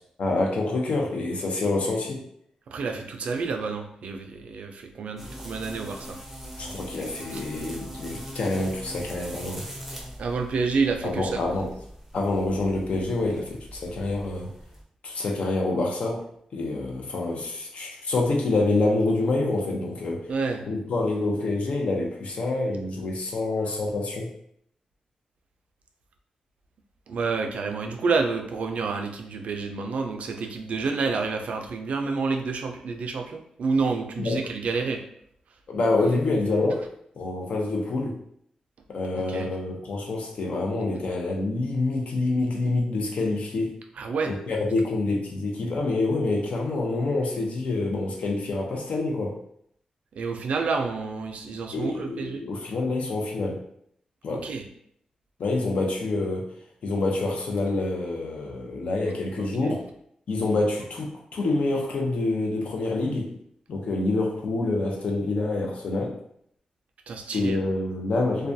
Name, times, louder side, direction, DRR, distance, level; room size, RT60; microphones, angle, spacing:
voice 1, 0.2-2.2 6.6-9.7 11.0-11.7 12.1-14.5 15.0-16.3 16.5-20.2 20.7-24.3 34.2-34.4 35.7-36.9 37.2-38.2 38.9-43.8 44.3-49.4 51.7-53.6 54.2-54.5 55.4-56.5 56.8-59.8 60.3-63.4 63.7-66.2 67.3-68.5, left 2 dB, 65° left, 0 dB, 0.5 m, -27 dB
voice 2, 2.7-6.2 7.3-7.4 10.2-11.4 20.3-20.6 27.1-35.0 39.3-39.5 44.0-44.3 50.2-52.4 54.3-54.6 59.4-59.7 67.1-67.6, right 4 dB, 75° right, 4 dB, 0.3 m, -29 dB
sound 1, 5.2-14.8, equal, 10° right, 0.5 m, -41 dB
2.3 x 2.2 x 2.6 m, 0.69 s
wide cardioid pair, 110°, 2 cm